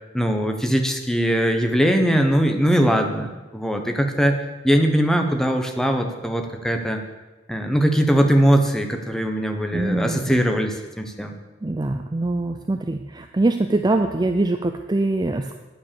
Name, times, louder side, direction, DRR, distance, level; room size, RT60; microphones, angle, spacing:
voice 1, 0.1-7.0 7.5-11.3, equal, ahead, 4 dB, 1.1 m, -21 dB
voice 2, 9.7-10.4 11.6-15.6, right 2 dB, 20° right, 6 dB, 0.5 m, -23 dB
9.3 x 9.0 x 6.9 m, 1.2 s
head